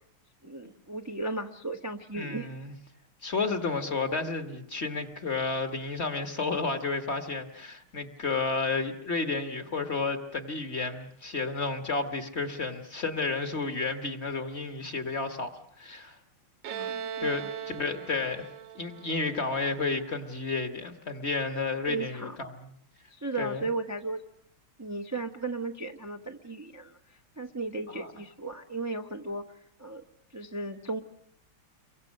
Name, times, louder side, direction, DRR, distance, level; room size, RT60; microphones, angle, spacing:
voice 1, 0.4-2.5 16.7-17.5 21.9-22.4 23.1-24.2 24.8-30.0 30.3-31.0, right 3 dB, 20° right, 4 dB, 0.4 m, -36 dB
voice 2, 2.1-2.7 3.2-15.5 15.8-16.2 17.2-18.5 18.7-22.7 23.4-23.7 27.9-28.1, left 4 dB, 35° left, 8 dB, 1.5 m, -31 dB
Bowed string instrument, 16.6-20.2, right 8 dB, 70° right, 1.9 m, -39 dB
29.0 x 23.5 x 6.5 m, 0.68 s
omnidirectional pair, 2.3 m